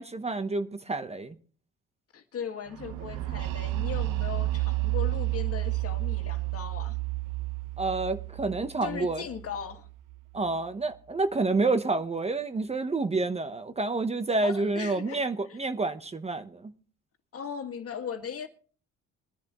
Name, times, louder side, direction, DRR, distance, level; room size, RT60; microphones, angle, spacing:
voice 1, 0.0-1.4 7.8-9.2 10.3-16.7, right 3 dB, 20° right, 0.9 m, -29 dB
voice 2, 2.1-7.0 8.8-9.9 14.4-15.6 17.3-18.5, left 7 dB, 50° left, 1.9 m, -38 dB
sound 1, 2.8-10.5, right 19 dB, 80° right, 1.1 m, -31 dB
23.0 x 10.5 x 3.0 m
cardioid pair, 110°, 31 cm